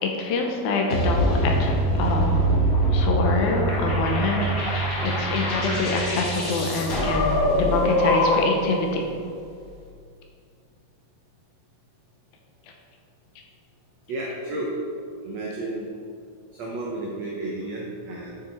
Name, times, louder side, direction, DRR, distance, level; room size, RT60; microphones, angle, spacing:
voice 1, 0.0-2.4 2.9-9.0, left 3 dB, 75° left, 2 dB, 2.7 m, -26 dB
sound 1, 0.9-8.7, right 1 dB, 50° left, 1.0 m, -23 dB
voice 2, 14.1-14.7 15.2-15.9 16.5-18.4, right 2 dB, 80° right, -3 dB, 1.5 m, -32 dB
9.2 x 6.6 x 4.4 m, 2.3 s
omnidirectional pair, 4.4 m